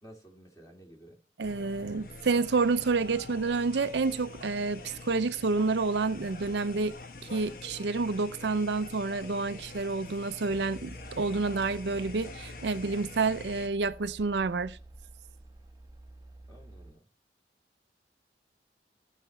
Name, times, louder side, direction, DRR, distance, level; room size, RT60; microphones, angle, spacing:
voice 1, 0.0-1.2 16.5-17.1, right 1 dB, 20° left, 2.3 m, -53 dB
sound 1, 1.4-13.7, left 3 dB, 50° left, 1.0 m, -45 dB
voice 2, 1.4-6.9 7.3-14.8, right 4 dB, 80° right, 0.5 m, -29 dB
sound 2, 10.5-16.9, right 2 dB, 20° right, 0.9 m, -49 dB
15.0 x 5.8 x 3.2 m
head